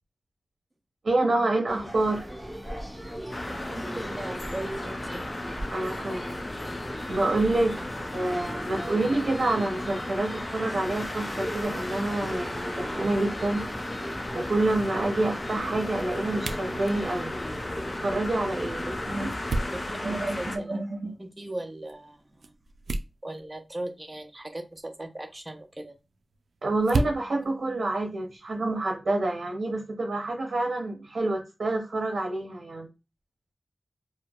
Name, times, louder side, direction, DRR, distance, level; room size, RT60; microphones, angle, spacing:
voice 1, 1.0-2.3 5.7-6.4 7.1-7.7 8.1-13.7 14.3-17.3 17.9-19.3 20.0-20.4 20.7-21.2 26.6-32.9, right 2 dB, 75° right, 1 dB, 0.7 m, -27 dB
sound 1, 1.7-20.0, equal, 5° right, 1.3 m, -39 dB
sound 2, 3.3-20.6, left 1 dB, 45° left, 0.6 m, -35 dB
voice 2, 3.5-5.3 7.8-7.9 19.7-20.8 21.2-22.5 23.2-26.0, right 1 dB, 25° right, 5 dB, 0.6 m, -39 dB
sound 3, 17.2-28.8, right 2 dB, 90° right, 0.3 m, -38 dB
4.4 x 2.1 x 2.3 m, 0.27 s
wide cardioid pair, 70°, 0 cm